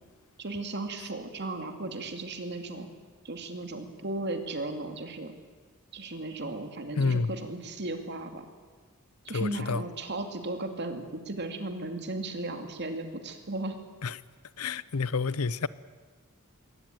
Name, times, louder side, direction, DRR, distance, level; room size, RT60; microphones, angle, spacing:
voice 1, 0.4-2.9 3.2-5.3 5.9-8.5 9.2-13.8, right 2 dB, 50° right, 2.4 m, -36 dB
voice 2, 7.0-7.3 9.3-9.8 14.0-14.2 14.6-15.7, left 4 dB, 90° left, 0.7 m, -28 dB
22.0 x 18.0 x 9.2 m
head